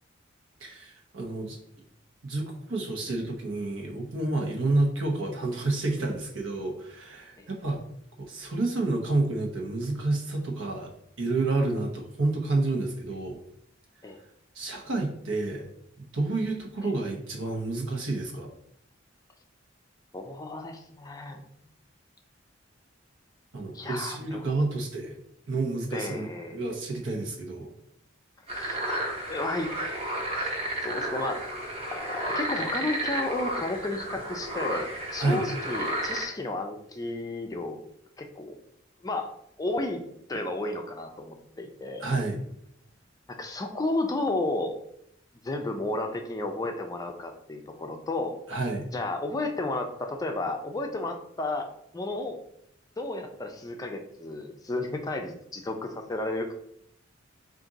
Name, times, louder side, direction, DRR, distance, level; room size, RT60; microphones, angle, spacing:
voice 1, 0.6-1.6 2.2-7.8 8.2-10.9 11.2-13.4 14.5-15.7 16.0-18.5 23.5-25.1 25.5-27.7 35.2-35.4 42.0-42.4 48.5-48.9, right 2 dB, 85° right, 0 dB, 0.9 m, -29 dB
voice 2, 20.1-21.5 23.7-24.5 25.9-26.6 28.5-28.8 29.3-29.7 30.8-31.5 31.9-37.8 38.2-38.5 39.0-39.3 39.6-40.0 40.3-42.0 43.3-44.8 45.4-48.3 48.9-51.7 51.9-52.4 53.0-56.5, left 2 dB, 20° left, 4 dB, 0.4 m, -32 dB
sound 1, 28.5-36.2, right 1 dB, 30° right, 0.9 m, -32 dB
3.7 x 2.5 x 3.9 m, 0.71 s
head